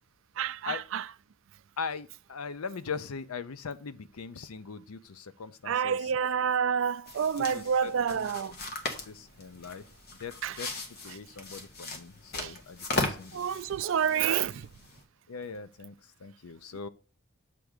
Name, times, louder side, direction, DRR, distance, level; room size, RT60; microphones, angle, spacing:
voice 1, 0.4-1.0 5.7-8.6 10.4-10.6 12.4-12.5 13.3-14.7, right 7 dB, 65° right, 0.3 m, -28 dB
voice 2, 1.8-6.1 7.4-8.3 9.0-9.8 10.2-10.7 11.0-13.5 15.3-16.9, left 5 dB, 90° left, 0.6 m, -40 dB
sound 1, 7.1-15.0, left 2 dB, 45° left, 1.3 m, -38 dB
7.6 x 3.5 x 6.5 m
head